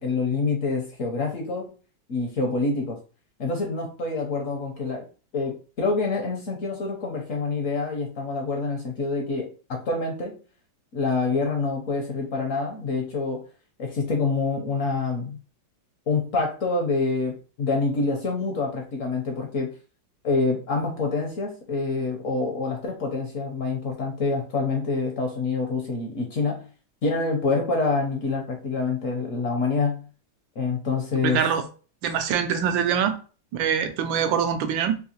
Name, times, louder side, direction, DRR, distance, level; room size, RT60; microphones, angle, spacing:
voice 1, 0.0-1.7 2.1-3.0 3.4-5.0 5.3-10.4 10.9-13.5 13.8-15.4 16.1-19.7 20.2-26.7 27.0-30.1 30.6-31.4, left 3 dB, 60° left, 0.8 m, -26 dB
voice 2, 31.2-31.6 32.0-33.1 33.5-35.0, right 8 dB, 85° right, 1.3 m, -24 dB
3.6 x 2.7 x 2.8 m
omnidirectional pair, 2.0 m